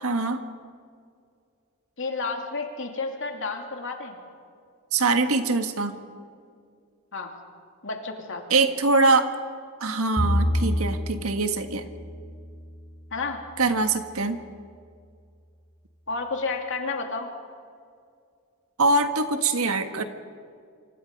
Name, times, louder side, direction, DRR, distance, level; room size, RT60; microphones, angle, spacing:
voice 1, 0.0-0.4 4.9-6.0 8.5-9.3 9.8-11.9 13.6-14.4 18.8-20.0, right 3 dB, 70° right, 7 dB, 1.6 m, -23 dB
voice 2, 2.0-4.2 7.1-7.3 7.8-8.4 13.1-13.4 16.1-17.3, left 4 dB, 60° left, 3 dB, 2.8 m, -31 dB
Bowed string instrument, 10.2-13.7, equal, 10° left, 6.1 m, -29 dB
27.5 x 25.0 x 5.4 m, 2.3 s
head